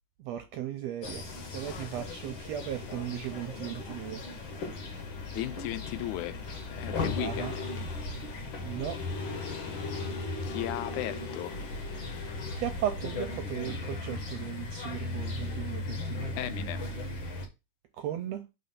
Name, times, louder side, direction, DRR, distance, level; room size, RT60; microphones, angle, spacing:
voice 1, 0.2-4.2 7.2-7.6 8.6-9.0 12.5-16.4 17.9-18.5, right 11 dB, 75° right, 1.6 m, -36 dB
sound 1, 1.0-17.5, left 3 dB, 50° left, 1.6 m, -37 dB
Aircraft, 1.2-11.8, right 3 dB, 35° right, 0.8 m, -56 dB
voice 2, 5.3-6.4 6.7-7.7 10.4-11.6 16.4-17.0, left 15 dB, 85° left, 2.0 m, -36 dB
4.3 x 4.1 x 5.6 m
omnidirectional pair, 3.5 m